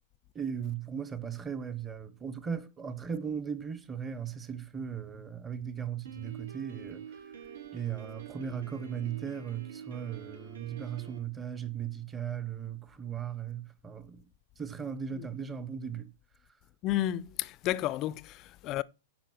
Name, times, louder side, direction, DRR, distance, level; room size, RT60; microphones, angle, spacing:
voice 1, 0.3-7.0 7.7-14.2 14.6-16.1, right 7 dB, 15° right, 0.9 m, -37 dB
Piano, 6.0-11.2, right 8 dB, 80° right, 3.6 m, -47 dB
voice 2, 16.8-18.8, left 14 dB, 30° left, 0.4 m, -32 dB
10.0 x 5.0 x 6.1 m
hypercardioid pair, 155°, 0 cm